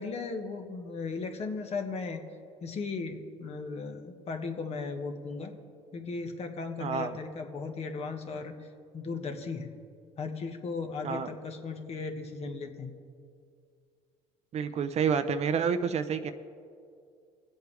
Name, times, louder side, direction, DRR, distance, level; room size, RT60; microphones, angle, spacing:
voice 1, 0.0-2.2 2.6-5.5 5.9-8.5 8.9-9.7 10.2-12.9, left 4 dB, 45° left, 4 dB, 1.5 m, -36 dB
voice 2, 6.8-7.2 11.0-11.3 14.5-16.3, right 6 dB, 45° right, 10 dB, 0.7 m, -29 dB
22.0 x 8.2 x 3.4 m, 2.3 s
supercardioid pair, 90°, 15 cm